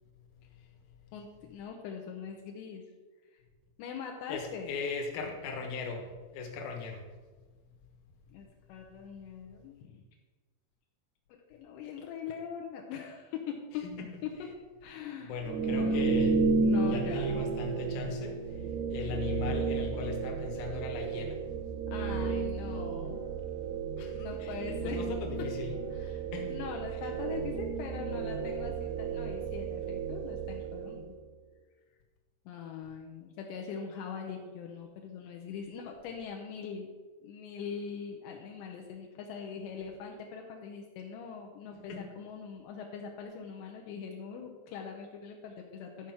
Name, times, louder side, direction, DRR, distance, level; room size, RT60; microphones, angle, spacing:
voice 1, 1.1-2.8 3.3-3.4 3.8-4.7 8.3-10.0 11.3-13.9 14.2-14.3 14.8-16.1 16.6-17.4 21.9-23.3 24.1-25.1 25.9-31.2 32.5-36.9 37.2-46.1, left 6 dB, 80° left, 1 dB, 2.8 m, -42 dB
voice 2, 4.3-7.0 13.8-14.1 15.3-16.4 16.9-18.4 18.9-21.4 24.0-25.7 26.3-26.5 41.7-42.1, left 5 dB, 65° left, 2 dB, 2.6 m, -38 dB
sound 1, 15.4-31.2, right 4 dB, 75° right, 2.6 m, -32 dB
12.0 x 4.8 x 5.9 m, 1.3 s
omnidirectional pair, 5.5 m